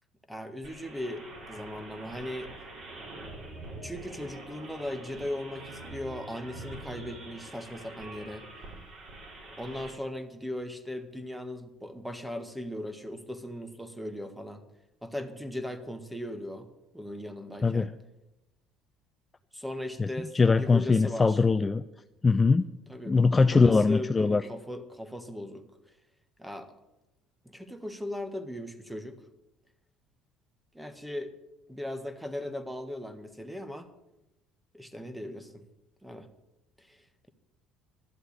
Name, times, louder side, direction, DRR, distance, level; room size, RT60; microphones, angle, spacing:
voice 1, 0.3-2.5 3.2-3.3 3.8-8.4 9.6-14.6 15.0-16.7 16.9-17.9 19.5-21.4 22.9-23.2 23.5-25.7 26.4-26.7 27.5-29.2 30.7-31.3 31.7-33.9 34.7-35.6 36.0-36.3 36.8-37.3, left 1 dB, 5° right, 9 dB, 1.7 m, -38 dB
sound 1, 0.6-9.9, right 2 dB, 50° right, 4.4 m, -45 dB
voice 2, 20.3-21.8 22.2-22.7 23.1-24.4, left 4 dB, 25° left, 10 dB, 0.5 m, -22 dB
12.0 x 7.9 x 8.4 m, 0.95 s
hypercardioid pair, 70°, 0 cm